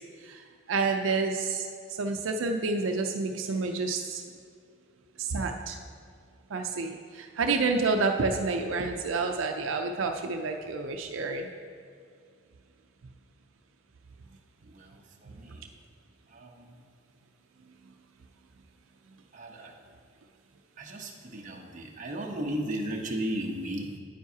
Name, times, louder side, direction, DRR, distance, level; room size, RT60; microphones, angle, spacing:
voice 1, 0.7-1.7 2.0-4.2 5.2-5.8 6.5-11.5, right 4 dB, 85° right, 4 dB, 0.5 m, -29 dB
voice 2, 14.7-15.6 16.3-16.7 19.3-19.7 20.8-24.0, right 1 dB, 40° right, 0 dB, 0.9 m, -35 dB
9.3 x 9.3 x 2.8 m, 2.2 s
head